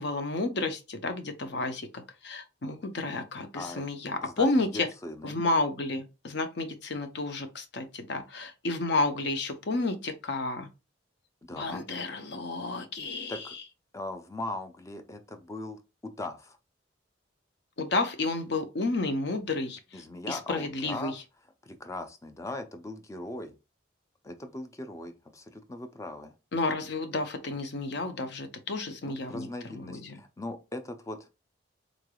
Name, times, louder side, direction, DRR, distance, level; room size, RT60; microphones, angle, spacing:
voice 1, 0.0-4.9 5.2-10.7 11.5-13.4 17.8-20.0 20.3-21.2 26.5-30.2, left 2 dB, 60° left, 0.6 m, -31 dB
voice 2, 3.5-5.4 11.4-11.9 13.3-13.6 13.9-16.6 19.9-21.2 21.6-23.6 24.2-26.3 29.3-31.3, left 2 dB, 15° left, 0.4 m, -39 dB
3.8 x 3.3 x 2.2 m
head